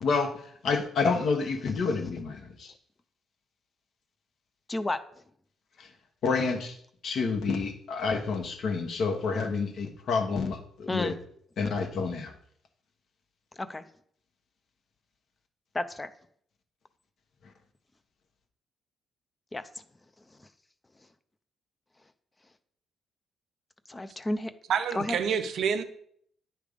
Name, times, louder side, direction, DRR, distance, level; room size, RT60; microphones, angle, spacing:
voice 1, 0.0-0.3 0.6-2.7 5.8-5.9 6.2-6.8 7.0-11.1 11.6-12.3, left 4 dB, 65° left, 5 dB, 1.1 m, -29 dB
voice 2, 10.9-11.2 13.5-13.8 15.7-16.1 19.5-19.6 20.3-20.5 23.9-24.5 24.9-25.2, left 2 dB, 20° left, 11 dB, 0.5 m, -31 dB
voice 3, 24.7-25.8, right 7 dB, 65° right, 9 dB, 0.6 m, -27 dB
9.6 x 3.4 x 5.1 m, 0.66 s
cardioid pair, 90°, 0 cm